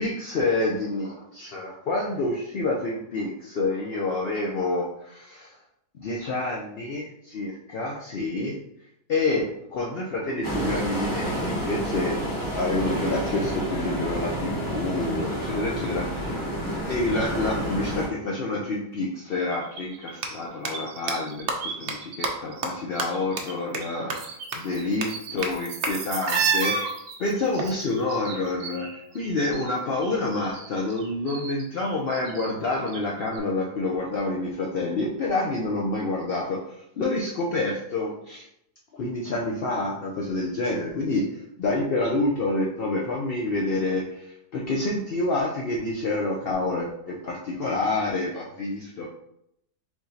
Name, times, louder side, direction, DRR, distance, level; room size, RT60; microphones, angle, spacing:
voice 1, 0.0-5.5 6.0-8.6 9.1-12.2 12.5-16.3 16.9-25.1 25.3-26.9 27.2-28.9 29.1-38.5 38.9-49.1, left 2 dB, 70° left, -2 dB, 0.5 m, -28 dB
sound 1, 10.4-18.1, right 1 dB, 15° left, 1.0 m, -29 dB
sound 2, 18.9-19.0 20.1-20.3 20.6-20.7 21.1-21.2 21.5-21.6 21.9-22.0 22.2-22.3 22.6-22.7 23.0-23.1 23.4-23.5 23.7-23.8 24.1-24.2 24.5-24.6 25.0-25.1 25.4-25.5 25.8-25.9 27.6-28.6, right 4 dB, 60° right, 0.6 m, -30 dB
sound 3, 19.5-22.2 22.5-23.5 23.8-29.7 30.0-33.0 33.3-33.4, right 6 dB, 75° right, 1.3 m, -33 dB
4.9 x 3.8 x 2.7 m, 0.76 s
omnidirectional pair, 1.7 m